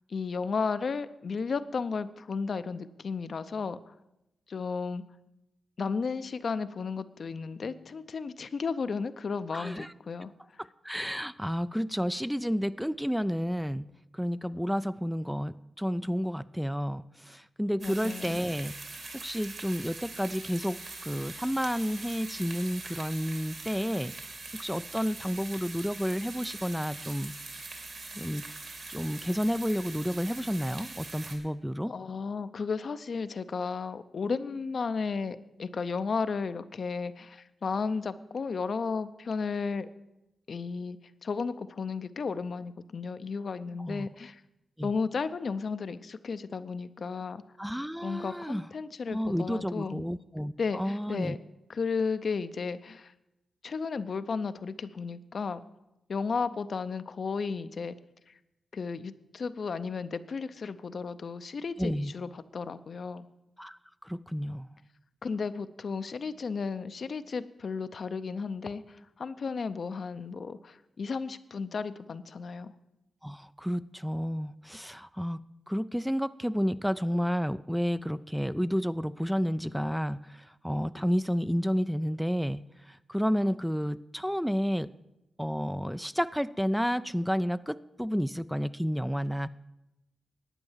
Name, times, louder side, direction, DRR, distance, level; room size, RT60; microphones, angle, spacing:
voice 1, 0.1-3.9 4.5-5.0 5.8-10.3 17.8-18.4 31.9-39.9 40.5-44.4 44.8-47.4 48.0-50.0 50.6-51.4 51.7-53.1 53.6-55.6 56.1-58.0 58.7-63.3 65.2-72.7, left 5 dB, 60° left, 12 dB, 0.6 m, -34 dB
voice 2, 9.5-9.9 10.6-13.9 14.1-18.7 19.1-24.1 24.5-27.3 28.1-28.4 28.9-31.9 43.9-44.1 44.8-44.9 47.6-48.7 49.1-51.4 61.8-62.1 63.6-64.7 73.2-75.4 75.7-84.9 85.4-89.5, equal, ahead, 14 dB, 0.3 m, -31 dB
sound 1, 17.8-31.4, right 3 dB, 60° right, 2.7 m, -43 dB
11.0 x 8.9 x 7.3 m, 0.92 s
cardioid pair, 75°, 0 cm